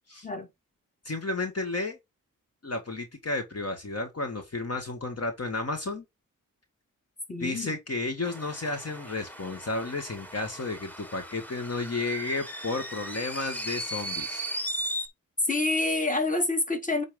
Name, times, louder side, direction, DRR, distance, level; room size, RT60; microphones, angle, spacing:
voice 1, 1.0-2.0 2.6-6.0 7.4-14.4, left 2 dB, 50° left, 1.6 m, -32 dB
voice 2, 7.3-7.8 15.5-17.0, left 2 dB, 25° left, 1.9 m, -27 dB
sound 1, 8.2-15.1, right 1 dB, 5° left, 1.3 m, -37 dB
8.6 x 4.2 x 3.7 m
cardioid pair, 70°, 33 cm